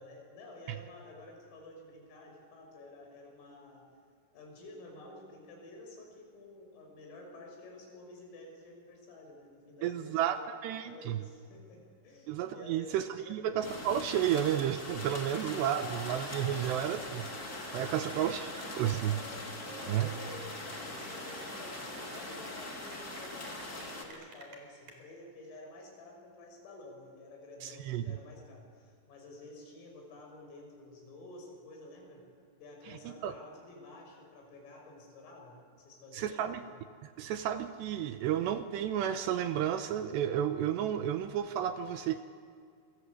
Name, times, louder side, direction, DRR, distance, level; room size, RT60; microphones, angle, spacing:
voice 1, 0.0-3.9 4.3-10.5 10.8-13.4 15.7-16.1 17.9-18.3 19.7-32.2 32.6-36.7, left 2 dB, 90° left, 1 dB, 8.8 m, -51 dB
voice 2, 9.8-11.2 12.3-17.3 17.7-19.2 19.9-20.1 27.6-28.2 33.2-33.3 36.1-36.6 37.2-42.2, right 10 dB, 80° right, 9 dB, 2.7 m, -32 dB
sound 1, 13.6-24.0, left 2 dB, 25° left, 2.6 m, -42 dB
Cheering / Applause, 14.9-24.9, right 2 dB, 40° right, 5.0 m, -49 dB
27.5 x 23.0 x 8.4 m, 2.2 s
omnidirectional pair, 5.7 m